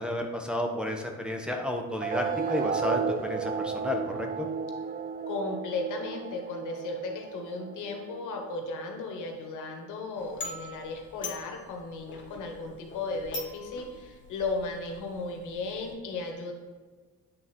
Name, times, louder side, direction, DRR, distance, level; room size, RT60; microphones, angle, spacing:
voice 1, 0.0-4.5, left 1 dB, 5° right, 0 dB, 1.0 m, -32 dB
sound 1, 2.0-9.0, right 6 dB, 30° right, 0.4 m, -34 dB
voice 2, 5.3-16.5, left 3 dB, 85° left, 2 dB, 1.3 m, -35 dB
sound 2, 10.2-15.9, left 2 dB, 40° left, 1.3 m, -44 dB
8.5 x 4.1 x 4.4 m, 1.4 s
cardioid pair, 90°, 30 cm